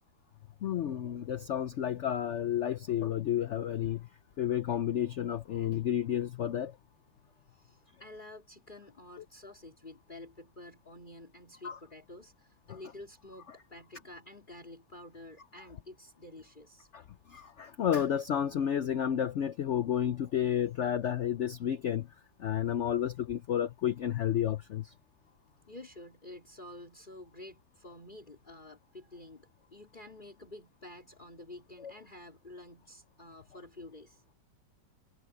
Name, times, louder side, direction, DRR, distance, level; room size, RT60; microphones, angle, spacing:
voice 1, 0.6-4.1 4.4-6.8 11.6-11.8 16.9-22.1 22.4-24.9 31.8-31.9, left 10 dB, 80° left, 0.6 m, -31 dB
voice 2, 7.5-16.9 25.7-34.2, left 1 dB, 25° left, 3.9 m, -50 dB
omnidirectional pair, 1.9 m